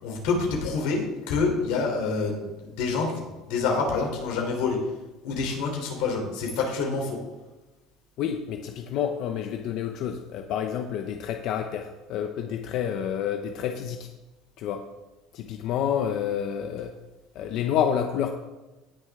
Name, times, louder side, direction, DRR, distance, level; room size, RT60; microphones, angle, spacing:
voice 1, 0.0-4.8 5.2-7.2, left 4 dB, 80° left, 1 dB, 3.3 m, -27 dB
voice 2, 8.2-14.1 14.6-14.8 15.3-16.9 17.3-18.3, left 8 dB, 55° left, 5 dB, 0.7 m, -29 dB
18.0 x 6.5 x 3.6 m, 1.1 s
cardioid pair, 155°, 0 cm